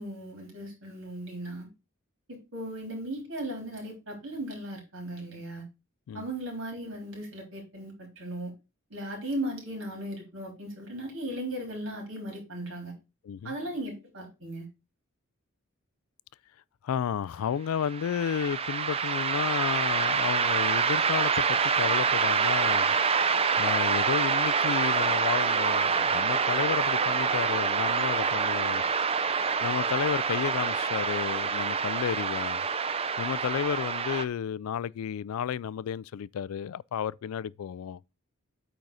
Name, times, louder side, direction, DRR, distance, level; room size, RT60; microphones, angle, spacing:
voice 1, 0.0-1.7 2.3-5.6 6.1-8.5 8.9-12.9 13.4-14.7, right 1 dB, 65° right, 3.7 m, -37 dB
voice 2, 16.8-22.9 23.6-28.8 29.6-32.6 33.2-38.0, left 8 dB, 80° left, 0.3 m, -32 dB
sound 1, 17.8-34.2, right 5 dB, 25° right, 0.5 m, -26 dB
8.8 x 4.0 x 4.8 m
head